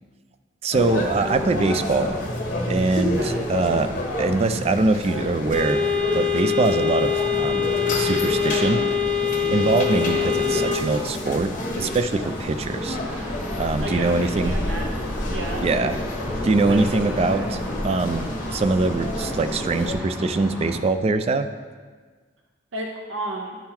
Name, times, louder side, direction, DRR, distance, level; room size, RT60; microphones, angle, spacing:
voice 1, 0.6-2.1 2.7-3.9 4.2-5.8 6.1-8.8 9.5-13.0 13.6-14.6 15.6-16.0 16.4-21.5, right 3 dB, 35° right, 10 dB, 0.3 m, -23 dB
sound 1, 0.7-19.9, left 1 dB, 45° left, 1.2 m, -29 dB
sound 2, 5.5-10.7, left 7 dB, 50° right, 1.6 m, -23 dB
sound 3, 12.2-20.8, equal, 10° right, 1.5 m, -35 dB
voice 2, 13.8-14.9 15.2-15.7 16.7-17.5 22.7-23.6, right 2 dB, 80° right, 0 dB, 0.7 m, -33 dB
11.0 x 3.8 x 4.4 m, 1.5 s
head